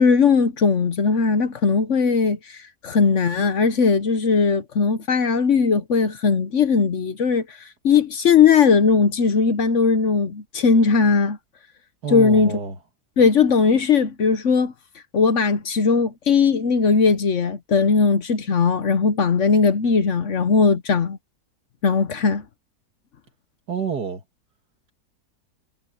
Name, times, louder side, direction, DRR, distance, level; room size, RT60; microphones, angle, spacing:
voice 1, 0.0-2.6 2.8-7.4 7.8-11.4 12.1-12.6 13.2-14.7 15.1-21.2 21.8-22.4, left 5 dB, 50° left, 1.2 m, -18 dB
voice 2, 12.0-12.8 23.7-24.2, right 6 dB, 75° right, 2.8 m, -28 dB
omnidirectional pair, 1.7 m